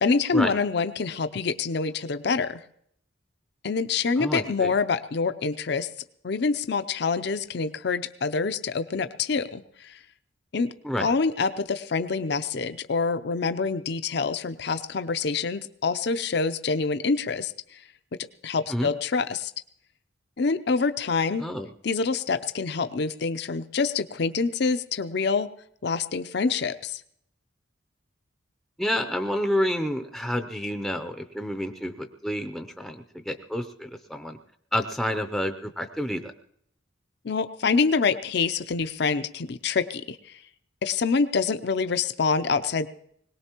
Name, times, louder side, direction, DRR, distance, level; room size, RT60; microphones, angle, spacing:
voice 1, 0.0-2.6 3.6-5.9 6.2-10.0 10.5-10.7 11.0-17.5 18.4-19.5 20.4-21.4 21.8-25.5 25.8-27.0 37.2-40.3 40.8-42.9, left 4 dB, 55° left, 11 dB, 0.5 m, -26 dB
voice 2, 4.2-4.7 10.8-11.1 18.7-18.9 21.4-21.7 28.8-34.4 34.7-36.3, equal, ahead, 7 dB, 0.5 m, -29 dB
21.5 x 18.5 x 3.0 m, 0.69 s
head